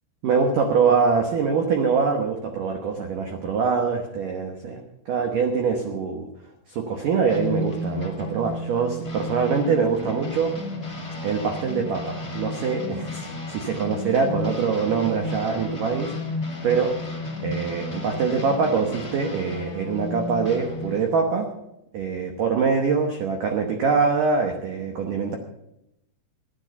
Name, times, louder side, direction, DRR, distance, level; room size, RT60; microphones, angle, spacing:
voice 1, 0.2-4.8 5.1-6.3 6.7-10.5 11.2-13.3 13.5-16.1 16.6-16.9 17.4-21.5 21.9-25.4, right 5 dB, 85° right, 4 dB, 1.8 m, -24 dB
sound 1, 7.3-21.1, left 2 dB, 10° left, 2.0 m, -33 dB
15.5 x 10.5 x 6.9 m, 0.85 s
omnidirectional pair, 5.8 m